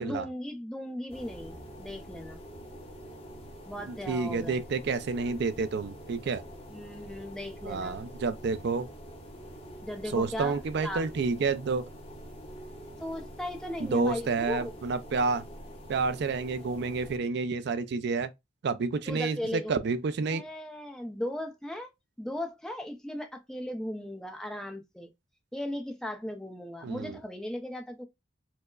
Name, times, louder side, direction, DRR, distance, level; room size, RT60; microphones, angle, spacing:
voice 1, 0.0-2.4 3.7-4.6 6.7-8.0 9.8-11.0 13.0-14.7 19.1-19.7 20.3-21.9 22.2-25.1 25.5-28.0, left 1 dB, 5° left, 0.5 m, -37 dB
sound 1, 1.1-17.2, equal, 30° left, 0.9 m, -46 dB
voice 2, 3.9-6.4 7.6-8.9 10.1-11.9 13.8-15.4 15.9-18.3 18.6-20.4 26.8-27.2, right 4 dB, 60° right, 0.4 m, -29 dB
4.4 x 2.0 x 2.3 m
head